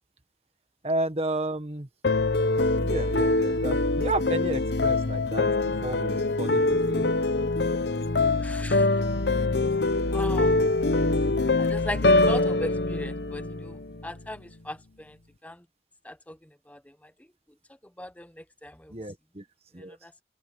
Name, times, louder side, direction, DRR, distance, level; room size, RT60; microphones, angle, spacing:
voice 1, 0.8-1.9 2.8-5.5 5.8-7.1 18.9-19.4 19.7-20.0, right 1 dB, 35° right, 1.5 m, -32 dB
sound 1, 2.0-14.2, left 2 dB, 65° left, 1.0 m, -24 dB
voice 2, 8.4-8.9 10.1-10.5 11.6-15.2 15.4-15.6 16.0-16.4 16.7-17.1 18.0-18.9 19.8-20.1, left 1 dB, 10° left, 0.8 m, -38 dB
open air
head